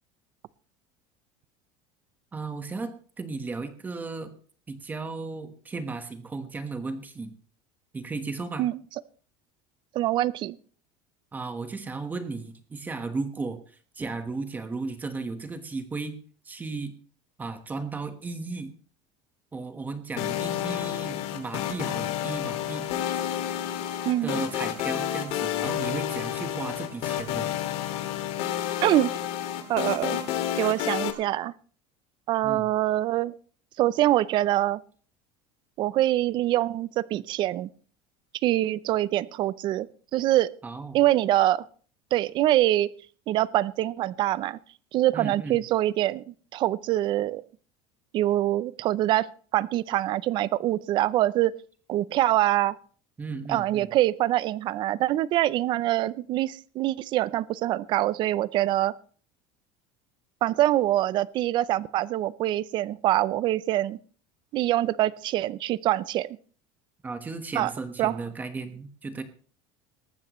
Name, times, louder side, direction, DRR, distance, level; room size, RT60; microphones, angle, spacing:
voice 1, 2.3-4.3 4.7-7.3 7.9-8.6 11.3-16.2 16.4-16.9 17.4-18.7 19.5-22.9 24.2-27.5 32.4-32.7 40.6-41.0 45.1-45.6 53.2-53.9 67.0-69.2, right 3 dB, 15° right, 8 dB, 1.3 m, -35 dB
voice 2, 9.9-10.6 24.1-24.5 28.8-29.2 29.7-30.2 30.5-31.5 32.3-33.3 33.8-34.8 35.8-37.7 38.4-39.9 40.1-40.5 40.9-41.6 42.1-42.9 43.3-44.6 44.9-47.4 48.1-51.5 51.9-52.8 53.5-58.9 60.4-64.0 64.5-66.3 67.6-67.7 68.0-68.2, right 14 dB, 40° right, 20 dB, 0.5 m, -24 dB
sound 1, 20.2-31.1, left 11 dB, 55° left, 2.2 m, -30 dB
19.0 x 14.5 x 3.1 m, 0.43 s
cardioid pair, 165°, 13 cm